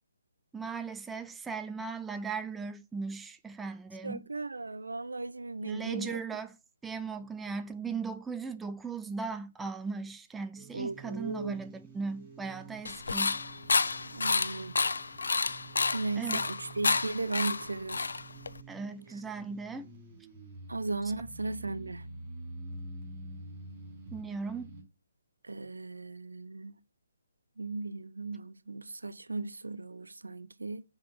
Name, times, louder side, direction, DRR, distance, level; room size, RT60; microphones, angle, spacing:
voice 1, 0.5-4.2 5.6-6.6 6.8-13.4 16.2-16.4 18.7-19.9 24.1-24.7, right 4 dB, 5° right, 0.3 m, -38 dB
voice 2, 4.0-6.2 10.7-11.6 14.1-14.8 15.9-18.1 20.7-22.1 25.4-26.8 27.6-30.8, right 3 dB, 80° right, 0.6 m, -36 dB
sound 1, 10.5-24.8, right 2 dB, 25° right, 3.7 m, -48 dB
sound 2, 12.8-18.6, left 4 dB, 70° left, 0.4 m, -30 dB
7.4 x 3.7 x 6.0 m
figure-of-eight pair, 145°, 0 cm